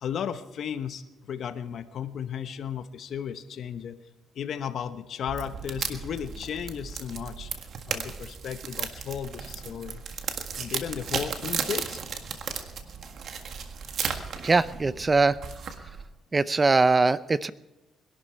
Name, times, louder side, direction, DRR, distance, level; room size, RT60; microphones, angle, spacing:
voice 1, 0.0-4.0 4.3-7.5 7.9-10.0 10.6-12.0, left 8 dB, 65° left, 9 dB, 1.0 m, -34 dB
sound 1, 5.3-16.1, right 6 dB, 65° right, 1.6 m, -35 dB
voice 2, 14.4-15.4 16.3-17.5, right 3 dB, 25° right, 16 dB, 0.6 m, -21 dB
21.5 x 12.0 x 4.5 m, 1.0 s
cardioid pair, 90°, 0 cm